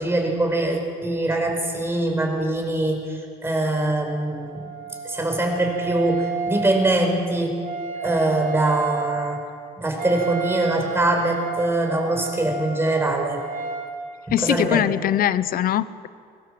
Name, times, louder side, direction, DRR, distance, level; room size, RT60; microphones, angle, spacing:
voice 1, 0.0-4.6 5.0-7.6 8.0-9.4 9.8-13.4 14.3-14.9, right 2 dB, 15° right, 2 dB, 5.0 m, -23 dB
Wind instrument woodwind instrument, 3.9-13.9, right 5 dB, 55° right, 5.5 m, -32 dB
voice 2, 14.3-16.1, left 11 dB, 60° left, 16 dB, 0.9 m, -22 dB
22.5 x 19.5 x 7.7 m, 2.2 s
cardioid pair, 110°, 17 cm